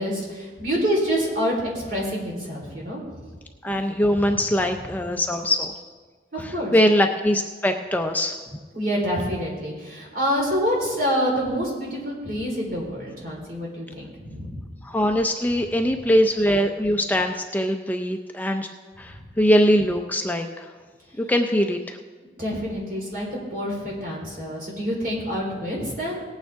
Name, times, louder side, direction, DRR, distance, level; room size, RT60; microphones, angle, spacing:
voice 1, 0.0-3.0 4.2-4.3 6.3-6.7 8.7-14.6 19.1-19.2 22.4-26.2, equal, 55° right, -3 dB, 4.1 m, -27 dB
voice 2, 3.6-5.7 6.4-8.3 14.8-18.7 19.0-20.7 21.2-22.0, equal, 10° left, 4 dB, 0.5 m, -22 dB
18.5 x 8.9 x 3.5 m, 1.4 s
head